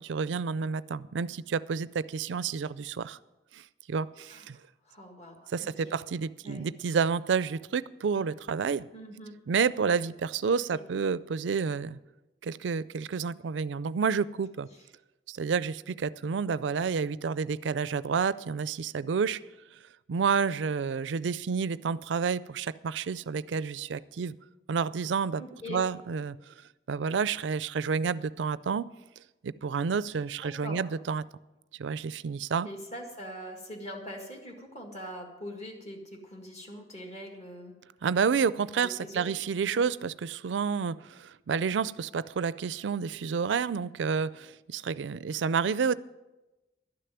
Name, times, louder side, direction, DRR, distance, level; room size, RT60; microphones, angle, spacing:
voice 1, 0.0-3.2 3.5-3.6 3.9-4.6 5.5-8.9 9.5-12.0 12.4-14.7 15.3-19.4 20.1-24.3 24.7-25.4 25.7-26.4 26.9-28.9 29.4-31.3 31.8-32.7 38.0-45.9, right 6 dB, 85° right, 18 dB, 0.4 m, -29 dB
voice 2, 4.3-6.0 6.4-6.7 8.9-9.3 10.7-10.8 25.4-25.8 30.4-30.8 32.6-37.8 38.7-39.3 39.7-39.8, equal, 40° left, 1 dB, 1.9 m, -43 dB
12.0 x 6.8 x 9.2 m, 1.1 s
head